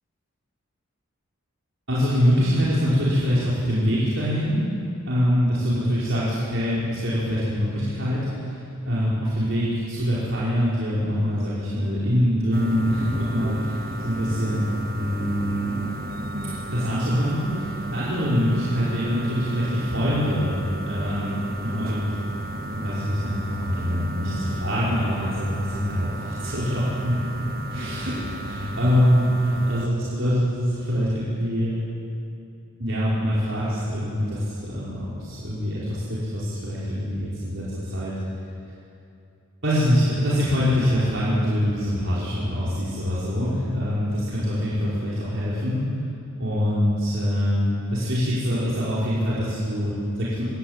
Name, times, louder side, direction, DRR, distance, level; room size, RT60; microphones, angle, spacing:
voice 1, 1.9-4.6 5.1-8.6 8.8-14.7 15.0-15.8 16.7-22.1 22.6-27.4 27.7-31.8 32.8-38.1 39.6-45.9 46.4-50.4, equal, 60° right, -9 dB, 5.1 m, -24 dB
sound 1, 12.5-29.9, right 1 dB, 40° right, 1.5 m, -33 dB
25.5 x 16.0 x 9.0 m, 2.6 s
head